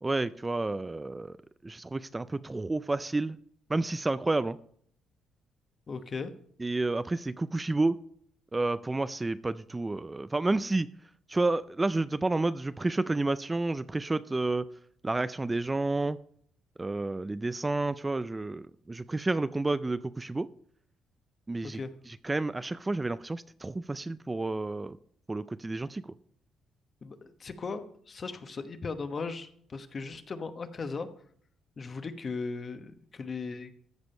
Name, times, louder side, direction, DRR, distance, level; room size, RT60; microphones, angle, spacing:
voice 1, 0.0-1.4 1.6-3.4 3.7-4.6 6.6-8.0 8.5-10.9 11.3-14.7 15.0-16.2 16.8-20.5 21.5-21.8 22.1-25.0 25.3-26.0, right 2 dB, 20° right, 14 dB, 0.3 m, -30 dB
voice 2, 5.9-6.3 21.6-21.9 27.0-31.1 31.8-33.7, left 4 dB, 40° left, 9 dB, 1.0 m, -37 dB
14.5 x 5.2 x 5.4 m, 0.62 s
cardioid pair, 90°, 0 cm